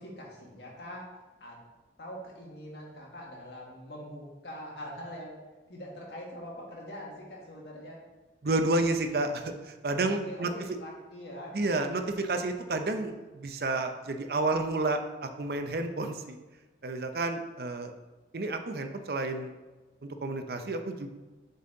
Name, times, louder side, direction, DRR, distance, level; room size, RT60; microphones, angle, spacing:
voice 1, 0.0-1.6 2.0-5.3 5.7-8.0 10.0-11.9, equal, 75° left, -2 dB, 1.7 m, -43 dB
voice 2, 8.4-10.5 11.5-16.4 16.8-17.9 18.3-19.5 20.0-21.1, right 2 dB, 60° right, 6 dB, 0.6 m, -30 dB
7.1 x 4.1 x 3.8 m, 1.2 s
head